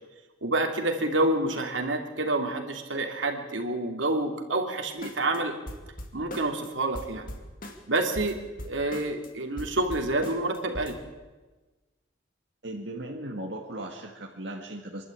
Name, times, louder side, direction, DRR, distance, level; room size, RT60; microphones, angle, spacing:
voice 1, 0.4-5.5 6.1-7.3 7.9-8.4 8.6-11.0, right 2 dB, 75° right, 4 dB, 2.9 m, -28 dB
sound 1, 5.0-5.4 5.7-6.7 6.9-9.3 9.6-11.0, left 1 dB, 45° left, 2.6 m, -40 dB
voice 2, 12.6-15.0, right 1 dB, 60° right, 0 dB, 2.0 m, -37 dB
25.0 x 12.5 x 8.7 m, 1.2 s
head